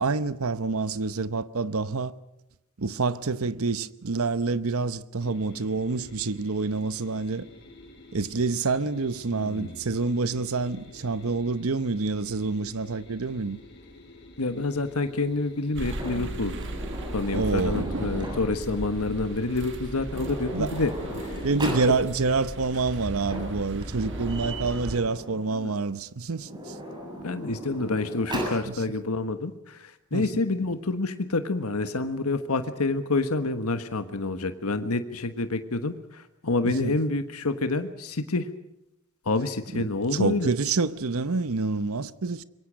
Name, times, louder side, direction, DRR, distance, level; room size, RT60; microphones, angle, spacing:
voice 1, 0.0-2.1 2.8-7.5 8.1-13.6 17.3-17.8 20.5-20.7 21.4-26.8 28.7-28.8 30.1-30.3 36.6-36.9 39.7-42.4, right 3 dB, 75° right, 0.9 m, -27 dB
sound 1, 5.2-22.4, left 1 dB, 50° left, 5.3 m, -49 dB
voice 2, 9.3-9.8 14.4-16.5 17.1-20.9 21.2-21.5 25.5-25.7 27.2-38.5 39.2-40.5, left 3 dB, 85° left, 1.4 m, -28 dB
sound 2, 15.7-25.0, right 1 dB, 55° right, 2.0 m, -36 dB
Sliding door, 15.8-18.7 19.7-19.8 20.0-21.9 23.0-25.5 26.3-28.6, equal, 20° right, 7.3 m, -37 dB
25.0 x 22.5 x 6.4 m
head